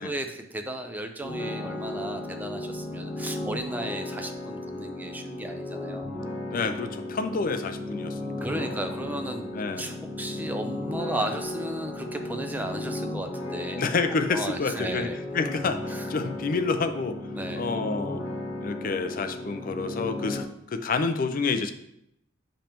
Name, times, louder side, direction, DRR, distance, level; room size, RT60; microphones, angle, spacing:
voice 1, 0.0-6.1 8.4-9.5 9.8-13.8 14.3-15.2 15.9-16.0 17.3-17.6, right 1 dB, 10° right, 5 dB, 0.4 m, -35 dB
sound 1, 1.2-20.4, left 1 dB, 80° left, 1.7 m, -35 dB
voice 2, 6.5-8.7 9.5-10.0 11.2-11.3 13.8-17.2 17.6-18.2 18.6-21.7, left 4 dB, 45° left, 8 dB, 0.5 m, -29 dB
7.2 x 5.2 x 2.9 m, 0.77 s
head